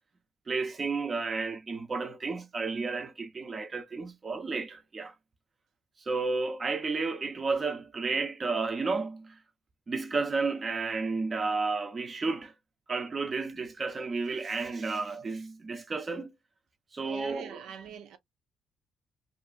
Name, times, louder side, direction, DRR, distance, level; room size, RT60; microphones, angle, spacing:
voice 1, 0.5-5.1 6.1-9.4 9.9-12.5 12.9-16.3 16.9-17.6, right 4 dB, 35° right, 0.6 m, -32 dB
voice 2, 17.0-18.2, right 8 dB, 80° right, 0.6 m, -44 dB
2.6 x 2.6 x 2.3 m
cardioid pair, 90°, 0 cm